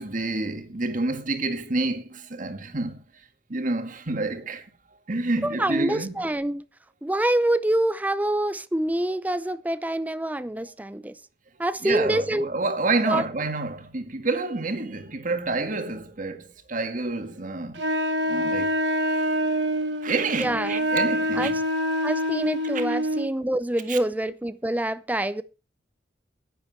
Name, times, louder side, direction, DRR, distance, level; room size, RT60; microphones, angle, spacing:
voice 1, 0.0-3.0 3.5-4.6 5.1-6.3 11.8-17.8 18.3-18.7 20.0-21.6 22.7-22.8 23.9-24.0, right 3 dB, 50° right, 1.8 m, -28 dB
voice 2, 5.4-6.6 7.0-11.2 11.6-12.5 13.1-13.2 20.4-20.8 21.3-21.6 22.0-25.4, right 1 dB, 10° right, 0.6 m, -26 dB
Wind instrument woodwind instrument, 17.8-23.3, equal, 80° right, 1.7 m, -26 dB
10.5 x 10.5 x 6.1 m
head